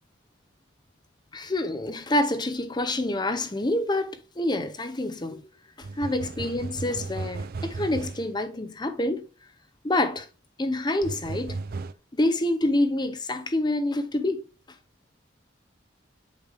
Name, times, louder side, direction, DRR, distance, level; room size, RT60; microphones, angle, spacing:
voice 1, 1.3-5.4 5.8-9.3 9.8-10.3 10.6-11.6 12.1-14.4, left 1 dB, 20° left, 0.7 m, -27 dB
sound 1, 5.8-8.3 11.0-11.9, right 3 dB, 50° right, 0.4 m, -35 dB
8.2 x 5.2 x 3.5 m
head